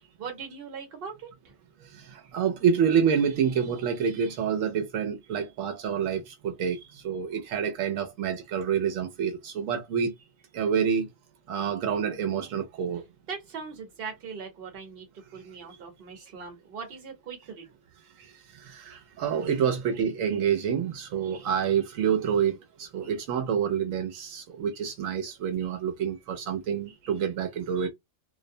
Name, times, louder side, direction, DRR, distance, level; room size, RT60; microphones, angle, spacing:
voice 1, 0.2-1.3 13.3-15.0 15.3-17.6, right 5 dB, 50° right, 1.0 m, -40 dB
voice 2, 2.3-6.8 7.0-10.1 10.5-11.1 11.5-13.0 18.7-22.5 22.8-27.9, right 7 dB, 85° right, 1.0 m, -27 dB
2.5 x 2.0 x 2.6 m
omnidirectional pair, 1.3 m